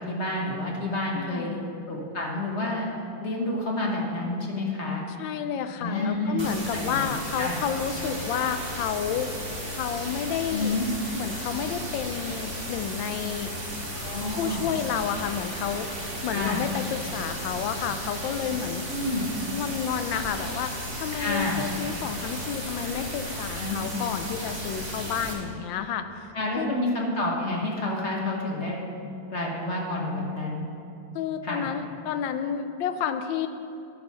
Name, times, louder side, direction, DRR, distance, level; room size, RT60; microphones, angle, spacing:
voice 1, 0.0-1.5 1.9-2.9 3.2-5.0 5.8-6.5 6.7-7.1 7.4-7.6 10.5-10.9 14.0-14.7 16.3-16.7 18.9-19.3 21.1-21.6 23.6-23.8 26.3-28.9 29.3-30.7 31.4-31.7, left 2 dB, 40° left, -2 dB, 1.2 m, -29 dB
voice 2, 1.1-1.7 5.2-9.3 9.8-10.8 11.1-13.5 14.4-15.9 16.2-18.9 19.5-26.8 31.1-33.5, left 8 dB, 75° left, 10 dB, 1.3 m, -30 dB
sound 1, 6.4-25.3, equal, 15° right, 1.3 m, -35 dB
sound 2, 10.4-10.5 10.8-10.9 11.3-11.4 11.8-11.9 12.3-12.4 12.8-12.9 13.2-13.3 13.7-13.8 14.2-14.3 14.7-14.8 15.2-15.3 15.6-15.7 16.1-16.2 16.6-16.7 17.1-17.2 17.6-17.7 18.0-18.1 18.5-18.6 19.0-19.1 19.5-19.6 20.0-20.1 20.4-20.5 20.9-21.0 21.4-21.5 21.9-22.0 22.4-22.5 22.8-22.9 23.3-23.4 23.8-23.9 24.3-24.4 24.8-24.9 25.2-25.3, right 5 dB, 60° right, 1.4 m, -45 dB
10.5 x 6.4 x 5.5 m, 2.7 s
omnidirectional pair, 2.2 m